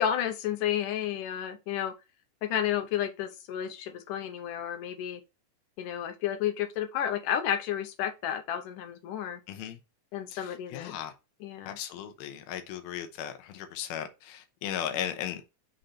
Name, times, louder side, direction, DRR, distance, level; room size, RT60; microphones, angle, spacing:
voice 1, 0.0-1.9 2.4-5.2 5.8-9.4 10.1-11.0 11.4-11.8, left 10 dB, 70° left, 2.2 m, -31 dB
voice 2, 9.5-9.8 10.3-11.1 11.6-15.4, left 10 dB, 90° left, 2.7 m, -36 dB
6.6 x 4.0 x 4.3 m
omnidirectional pair, 4.3 m